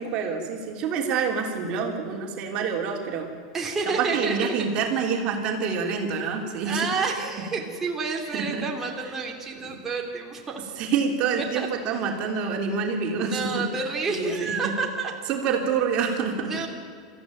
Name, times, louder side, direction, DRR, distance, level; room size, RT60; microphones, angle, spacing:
voice 1, 0.0-3.3 3.8-6.8 8.3-8.6 9.6-9.8 10.8-13.6 14.1-14.7 15.3-16.5, right 6 dB, 45° right, 2 dB, 3.2 m, -27 dB
voice 2, 3.5-4.5 6.6-10.6 11.4-12.1 13.2-15.1 16.4-16.7, right 4 dB, 15° right, -1 dB, 2.9 m, -29 dB
21.5 x 14.5 x 9.2 m, 2.1 s
supercardioid pair, 115°, 2 cm